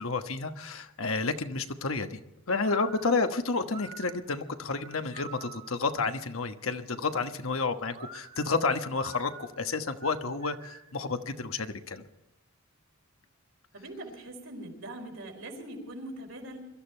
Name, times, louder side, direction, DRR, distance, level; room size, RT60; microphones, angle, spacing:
voice 1, 0.0-2.2 2.5-12.0, left 4 dB, 70° left, 7 dB, 1.2 m, -30 dB
sound 1, 2.6-5.9 7.9-11.0, right 4 dB, 30° right, 1.5 m, -48 dB
voice 2, 13.7-16.7, right 1 dB, 75° right, 1 dB, 4.5 m, -42 dB
23.0 x 13.5 x 4.5 m, 0.91 s
head